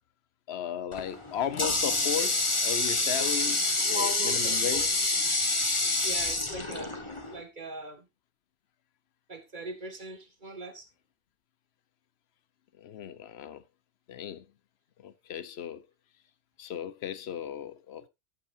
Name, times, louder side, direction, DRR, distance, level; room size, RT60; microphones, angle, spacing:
voice 1, 0.5-4.9 12.8-13.6 14.1-14.4 15.0-15.8 16.6-18.1, left 9 dB, 60° left, 1.1 m, -35 dB
Water tap faucet, 0.9-7.4, left 2 dB, 25° left, 1.6 m, -27 dB
voice 2, 3.9-4.9 6.0-7.0 7.3-8.1 9.3-10.9, equal, 40° right, 2.1 m, -39 dB
14.0 x 8.9 x 2.6 m
omnidirectional pair, 1.2 m